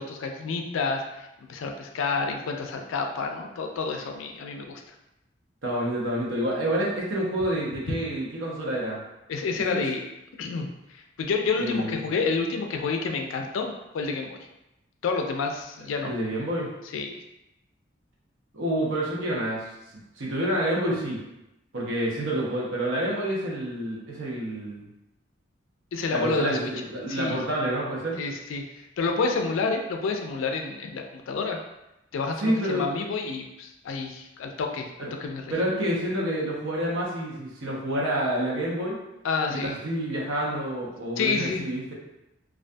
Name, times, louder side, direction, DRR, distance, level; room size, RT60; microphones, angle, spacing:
voice 1, 0.0-4.8 9.3-10.0 10.4-14.4 15.0-16.1 16.9-17.2 25.9-26.7 27.1-27.4 28.2-31.6 32.1-34.9 35.2-35.5 39.2-39.8 41.2-41.6, left 4 dB, 85° left, 3 dB, 0.3 m, -29 dB
voice 2, 5.6-9.0 9.7-9.8 11.6-12.0 16.0-16.7 18.5-19.6 20.2-21.2 21.7-24.9 26.1-28.2 32.4-32.8 35.0-35.1 35.5-39.0 39.5-41.9, right 1 dB, 85° right, -4 dB, 0.6 m, -28 dB
2.3 x 2.2 x 2.5 m, 0.91 s
head